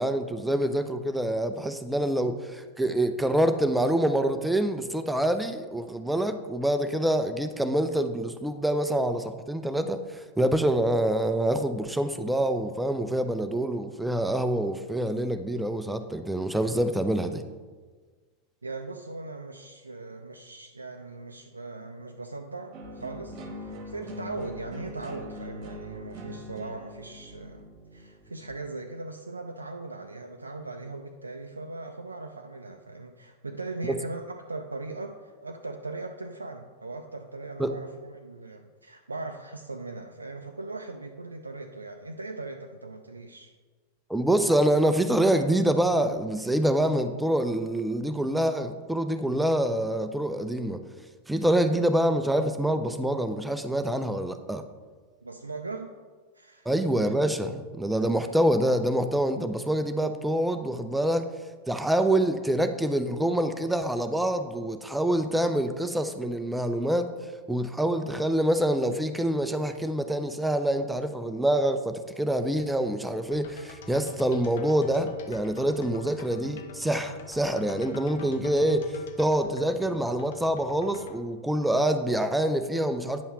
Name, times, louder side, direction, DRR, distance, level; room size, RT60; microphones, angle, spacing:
voice 1, 0.0-17.4 37.6-37.7 44.1-50.8 51.3-54.6 56.7-61.3 61.7-67.1 67.5-83.2, right 1 dB, 5° right, 8 dB, 0.5 m, -26 dB
voice 2, 18.6-27.6 27.9-43.5 55.2-55.9 56.3-56.7, right 3 dB, 80° right, 4 dB, 0.4 m, -39 dB
sound 1, 22.7-28.7, left 1 dB, 40° right, 1.1 m, -42 dB
sound 2, 73.3-81.2, left 6 dB, 55° left, 0.6 m, -48 dB
9.5 x 5.6 x 3.1 m, 1.4 s
figure-of-eight pair, 90°, 0 cm